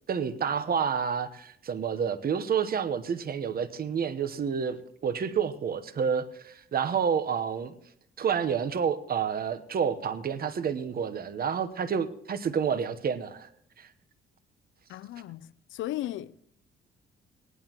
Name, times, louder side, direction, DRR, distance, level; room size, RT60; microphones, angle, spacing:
voice 1, 0.1-7.7 8.2-13.5 13.8-13.9, right 7 dB, 50° right, 1.1 m, -29 dB
voice 2, 14.9-16.4, left 14 dB, 75° left, 0.5 m, -36 dB
18.0 x 11.0 x 3.0 m
cardioid pair, 90°, 20 cm